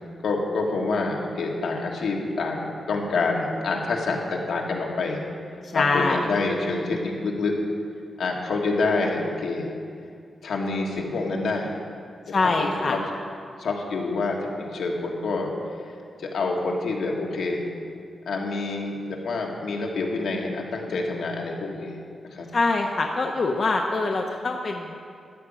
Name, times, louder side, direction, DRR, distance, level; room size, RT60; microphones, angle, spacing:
voice 1, 0.2-5.2 5.7-7.6 8.2-9.7 10.4-11.7 12.3-13.0 13.6-15.5 16.2-17.6 18.2-22.0 22.3-22.5, left 3 dB, 85° left, 0 dB, 1.6 m, -27 dB
voice 2, 5.7-6.3 12.3-13.0 22.5-25.0, left 3 dB, 45° left, 2 dB, 0.7 m, -24 dB
13.0 x 5.1 x 8.7 m, 2.3 s
wide cardioid pair, 150°, 0 cm